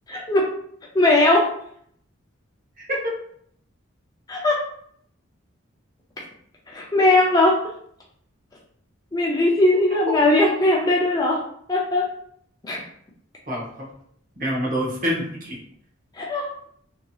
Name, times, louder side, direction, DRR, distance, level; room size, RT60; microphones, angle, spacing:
voice 1, 0.1-0.5 0.9-1.5 4.3-4.6 6.7-7.6 9.1-11.4 11.7-12.1 12.6-12.8 16.1-16.5, left 2 dB, 20° left, -3 dB, 0.4 m, -19 dB
voice 2, 2.8-3.1 13.5-13.9 14.4-15.6, equal, 40° right, -2 dB, 0.8 m, -26 dB
2.7 x 2.7 x 2.3 m, 0.65 s
head